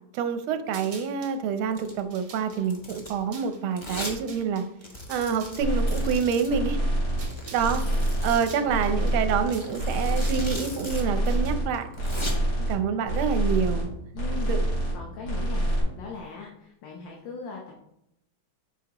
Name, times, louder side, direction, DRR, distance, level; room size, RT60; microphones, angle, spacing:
voice 1, 0.1-4.6 5.1-6.8 7.5-7.8 8.2-11.9 12.7-13.9 14.5-14.6, right 6 dB, 85° right, 9 dB, 1.5 m, -27 dB
sound 1, 0.7-1.4 1.9-7.7 8.0-11.8, right 4 dB, 60° right, 1.9 m, -48 dB
Domestic sounds home sounds, 1.7-2.0 2.5-3.2 3.8-4.2 4.5-4.6 4.8-6.5 7.3-8.6 9.5-11.0 11.3-11.4 11.8-12.3, left 1 dB, 25° left, 0.7 m, -38 dB
sound 2, 5.6-6.2 6.5-7.3 7.6-8.4 8.7-9.5 9.8-10.6 10.9-11.7 12.0-12.7 13.1-13.9 14.1-15.0 15.2-15.8, right 1 dB, 90° left, 3.3 m, -26 dB
voice 2, 14.1-14.5 14.9-17.7, left 4 dB, 65° left, 0 dB, 1.6 m, -39 dB
8.1 x 5.5 x 2.9 m, 0.79 s
omnidirectional pair, 2.2 m